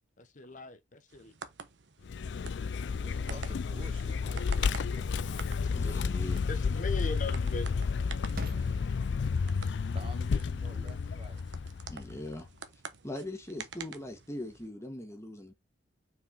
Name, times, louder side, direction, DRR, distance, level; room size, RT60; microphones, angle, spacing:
voice 1, 0.2-1.3 6.5-7.7, left 3 dB, 45° left, 1.0 m, -39 dB
sound 1, 1.1-14.7, right 5 dB, 75° right, 1.1 m, -49 dB
Vehicle, 2.0-12.4, left 5 dB, 70° left, 0.4 m, -31 dB
sound 2, 2.5-13.3, right 2 dB, 55° right, 1.4 m, -55 dB
voice 2, 3.0-5.4 9.9-11.4, right 2 dB, 30° right, 0.6 m, -50 dB
voice 3, 5.7-6.4 11.9-12.5 13.0-15.5, left 1 dB, 15° left, 1.8 m, -40 dB
6.0 x 4.9 x 3.9 m
head